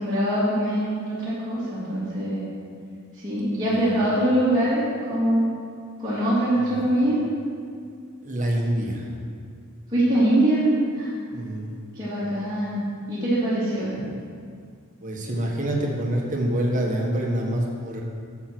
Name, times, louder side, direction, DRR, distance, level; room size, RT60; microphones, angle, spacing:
voice 1, 0.0-2.4 3.2-4.8 5.1-5.5 6.0-7.2 9.9-10.6 11.0-11.1 11.9-12.8 13.1-13.9, right 1 dB, 20° right, -12 dB, 2.8 m, -23 dB
voice 2, 3.6-4.0 6.6-6.9 8.2-9.1 11.3-11.7 15.0-18.0, right 1 dB, 35° right, -1 dB, 1.6 m, -26 dB
9.6 x 7.4 x 6.3 m, 2.2 s
head